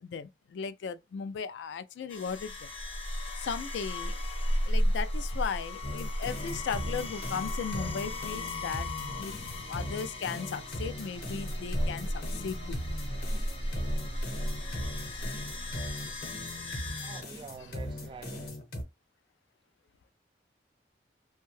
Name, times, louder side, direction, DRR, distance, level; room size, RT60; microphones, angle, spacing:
voice 1, 0.0-2.7 3.4-4.2 4.6-8.9 9.2-12.8, left 6 dB, 80° left, 0.3 m, -37 dB
sound 1, 2.1-17.2, left 1 dB, 30° left, 0.6 m, -34 dB
sound 2, 5.8-18.8, left 1 dB, 55° left, 0.9 m, -39 dB
sound 3, 6.3-18.5, right 1 dB, 75° right, 0.8 m, -48 dB
voice 2, 16.9-18.7, right 4 dB, 30° right, 0.3 m, -47 dB
2.7 x 2.2 x 3.0 m
head